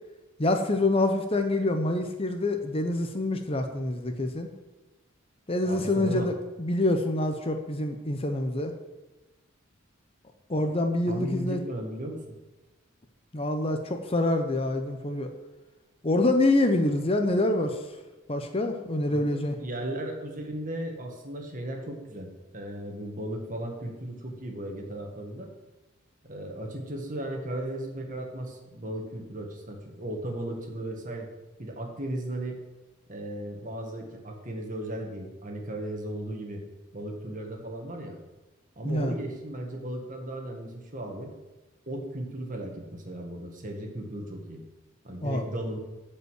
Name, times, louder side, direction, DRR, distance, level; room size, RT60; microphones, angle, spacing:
voice 1, 0.4-4.5 5.5-6.3 6.6-8.7 10.5-11.6 13.3-15.3 16.0-17.8 18.3-19.6 38.8-39.2 45.2-45.4, left 2 dB, 25° left, 5 dB, 0.8 m, -26 dB
voice 2, 5.6-6.3 11.1-12.4 19.1-25.5 26.2-31.3 31.6-32.6 33.1-36.6 36.9-38.2 38.8-41.3 41.9-44.6 45.0-45.8, right 1 dB, 40° right, 2 dB, 1.9 m, -36 dB
12.5 x 5.5 x 8.2 m, 1.1 s
head